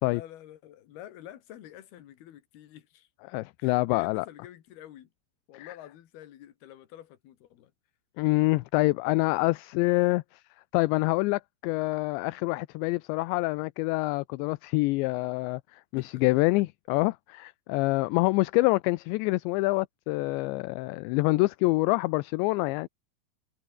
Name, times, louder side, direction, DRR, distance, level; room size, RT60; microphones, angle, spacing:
voice 1, 0.0-3.1 3.6-5.1 5.5-7.7 16.0-16.6, left 12 dB, 65° left, 3.5 m, -48 dB
voice 2, 3.3-4.3 5.5-5.7 8.2-10.4 10.7-22.9, left 22 dB, 80° left, 2.8 m, -26 dB
omnidirectional pair, 5.3 m